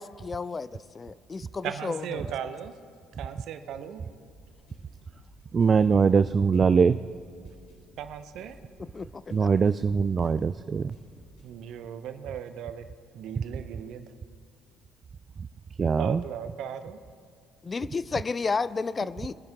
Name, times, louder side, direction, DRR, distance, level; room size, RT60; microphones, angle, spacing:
voice 1, 0.0-2.2 8.9-9.5 17.6-19.3, left 4 dB, 30° left, 17 dB, 0.4 m, -32 dB
voice 2, 1.6-2.7 3.2-4.0 8.0-8.6 11.4-12.9 13.1-14.1 16.0-17.0, right 9 dB, 65° right, 10 dB, 0.8 m, -37 dB
sound 1, 4.2-13.9, equal, 70° left, 4.0 m, -55 dB
voice 3, 5.5-7.0 9.3-11.0 15.4-15.5 15.8-16.2, right 5 dB, 40° right, 13 dB, 0.3 m, -22 dB
22.0 x 10.5 x 3.7 m, 2.3 s
hypercardioid pair, 55°, 0 cm